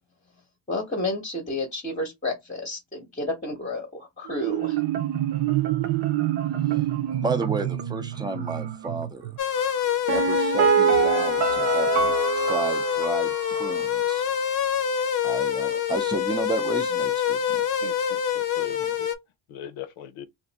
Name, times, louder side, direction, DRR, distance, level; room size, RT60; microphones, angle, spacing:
voice 1, 0.7-4.8, left 2 dB, 15° left, 0.8 m, -31 dB
Marimba xylophone, 4.3-9.8, right 14 dB, 60° right, 0.7 m, -27 dB
voice 2, 7.2-9.3 10.1-14.2 15.2-17.6 18.7-18.9, right 3 dB, 10° right, 0.4 m, -32 dB
sound 1, 9.4-19.2, left 8 dB, 45° left, 0.5 m, -26 dB
Piano, 10.1-13.8 14.1-14.2, right 7 dB, 90° right, 0.9 m, -24 dB
voice 3, 17.8-19.1 19.5-20.3, left 9 dB, 85° left, 0.7 m, -40 dB
2.6 x 2.5 x 3.9 m
cardioid pair, 135°, 47 cm